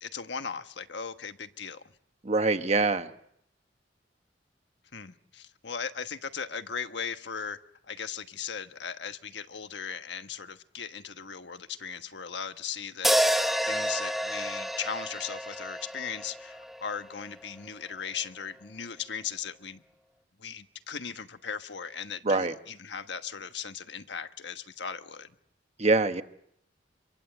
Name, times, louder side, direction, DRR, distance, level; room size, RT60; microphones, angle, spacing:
voice 1, 0.0-1.8 4.9-7.6 7.8-19.8 20.4-25.3, left 6 dB, 75° left, 1.3 m, -38 dB
voice 2, 2.2-3.1 22.2-22.5 25.8-26.2, right 3 dB, 35° right, 1.2 m, -24 dB
sound 1, 13.0-17.3, equal, ahead, 1.0 m, -29 dB
27.0 x 23.0 x 8.0 m
head